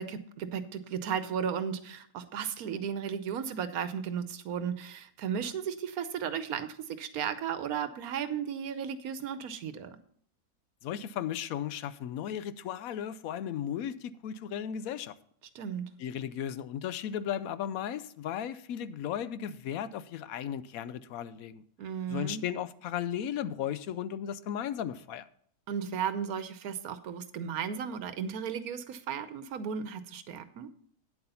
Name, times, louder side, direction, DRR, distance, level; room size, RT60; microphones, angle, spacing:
voice 1, 0.0-10.0 15.5-15.9 21.8-22.4 25.7-30.7, right 7 dB, 80° right, 1.2 m, -35 dB
voice 2, 10.8-15.1 16.0-21.6 22.1-25.3, left 9 dB, 75° left, 1.0 m, -35 dB
9.4 x 7.9 x 5.6 m
omnidirectional pair, 1.5 m